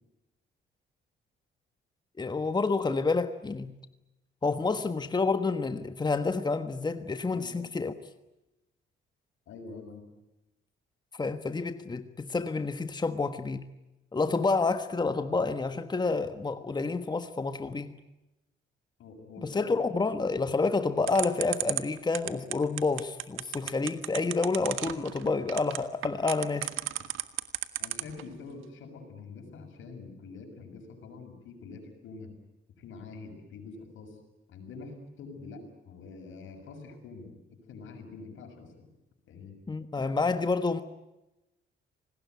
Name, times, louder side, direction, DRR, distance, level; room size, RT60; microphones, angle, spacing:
voice 1, 2.2-3.8 4.4-7.9 11.1-13.7 14.1-18.0 19.4-26.7 39.7-40.8, left 3 dB, 20° left, 1.4 m, -29 dB
voice 2, 9.5-10.1 19.0-19.7 27.8-32.3 32.8-34.2 34.5-38.9 39.2-39.5, left 4 dB, 80° left, 6.7 m, -45 dB
sound 1, 21.1-28.2, right 14 dB, 85° right, 1.5 m, -32 dB
27.0 x 19.5 x 9.5 m
cardioid pair, 90°, 20 cm